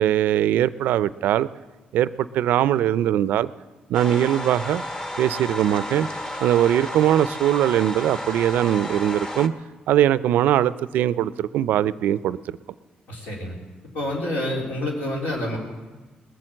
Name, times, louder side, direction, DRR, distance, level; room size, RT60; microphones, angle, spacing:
voice 1, 0.0-1.5 1.9-3.5 3.9-4.8 5.2-6.1 6.4-9.5 9.9-12.6, right 11 dB, 90° right, 17 dB, 0.4 m, -21 dB
sound 1, 3.9-9.5, left 1 dB, 20° left, 1.0 m, -32 dB
voice 2, 13.1-13.6 13.9-15.6, left 1 dB, 85° left, -2 dB, 3.6 m, -28 dB
19.5 x 7.7 x 7.6 m, 1.2 s
cardioid pair, 100°, 3 cm